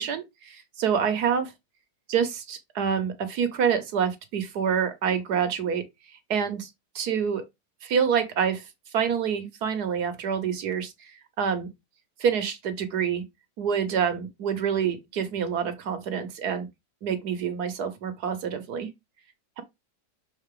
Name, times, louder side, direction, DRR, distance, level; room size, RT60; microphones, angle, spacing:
voice 1, 0.0-1.5 2.1-5.8 6.3-6.7 6.9-7.4 7.8-8.6 8.9-11.1 11.4-11.7 12.2-13.2 13.6-16.7 17.0-18.9, right 7 dB, 65° right, 1.4 m, -27 dB
6.5 x 3.9 x 3.7 m
omnidirectional pair, 1.9 m